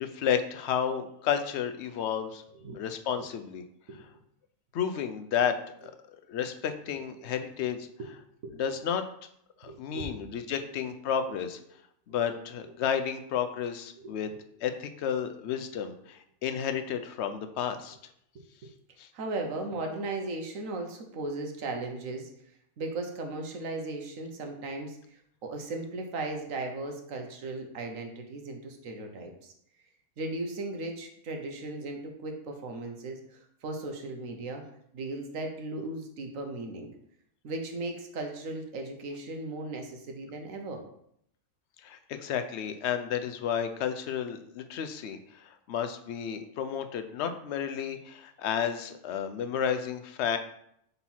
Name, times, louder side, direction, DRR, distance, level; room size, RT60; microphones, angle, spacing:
voice 1, 0.0-2.4 2.7-3.6 4.7-5.5 5.8-5.9 6.3-7.8 8.5-9.0 9.6-11.6 12.1-14.3 14.6-18.0 19.0-19.1 41.8-50.4, left 8 dB, 60° left, 8 dB, 0.8 m, -32 dB
voice 2, 9.6-10.1 10.5-10.6 14.0-14.1 18.6-18.7 19.1-22.3 22.8-29.5 30.2-34.6 34.9-36.9 37.4-40.8, right 2 dB, 70° right, 3 dB, 1.3 m, -37 dB
4.5 x 4.1 x 5.5 m, 0.72 s
omnidirectional pair, 1.5 m